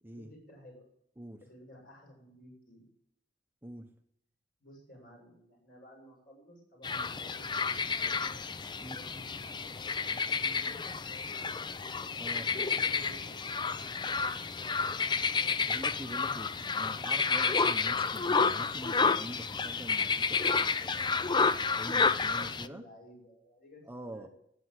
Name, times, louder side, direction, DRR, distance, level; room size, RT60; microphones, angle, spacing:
voice 1, 0.1-0.9 1.4-2.9 4.6-8.2 8.8-11.0 12.4-13.4 22.3-24.3, equal, 55° left, -1 dB, 6.9 m, -54 dB
voice 2, 3.6-4.0 8.8-9.0 12.2-12.5 15.7-21.4 21.7-22.8 23.9-24.3, right 1 dB, 10° right, 5 dB, 0.9 m, -45 dB
sound 1, 6.8-22.7, left 5 dB, 25° left, 0.5 m, -30 dB
14.0 x 8.7 x 8.1 m, 0.74 s
head